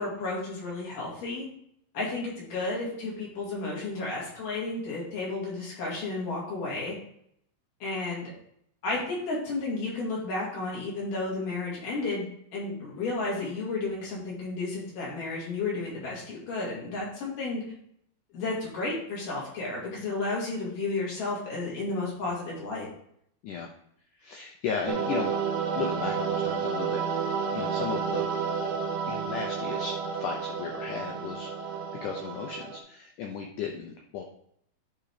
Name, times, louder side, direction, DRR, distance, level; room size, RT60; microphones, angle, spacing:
voice 1, 0.0-1.5 1.9-6.9 7.8-8.3 8.8-12.3 12.5-17.6 18.3-22.9, left 3 dB, 55° left, -5 dB, 3.8 m, -32 dB
voice 2, 24.2-25.3 25.8-28.3 29.1-34.2, left 6 dB, 85° left, 2 dB, 1.8 m, -35 dB
sound 1, 24.9-32.8, right 6 dB, 75° right, 2.3 m, -31 dB
10.5 x 3.9 x 5.0 m, 0.70 s
omnidirectional pair, 4.7 m